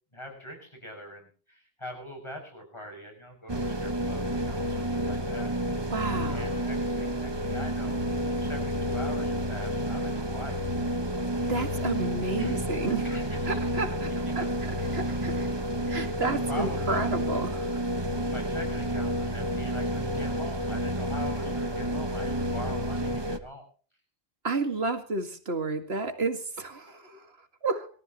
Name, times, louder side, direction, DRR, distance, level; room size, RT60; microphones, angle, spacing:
voice 1, 0.1-5.9 6.3-8.0 8.4-10.6 12.4-12.6 13.0-13.4 14.2-14.3 14.9-15.0 16.5-17.0 18.3-23.6, equal, 30° left, 3 dB, 7.8 m, -42 dB
sound 1, 3.5-23.4, equal, 25° right, 1.2 m, -30 dB
voice 2, 5.9-6.5 11.5-13.1 13.5-15.5 15.9-17.8 24.4-27.9, right 3 dB, 75° right, 7 dB, 2.3 m, -31 dB
26.0 x 14.0 x 3.1 m, 0.40 s
omnidirectional pair, 1.0 m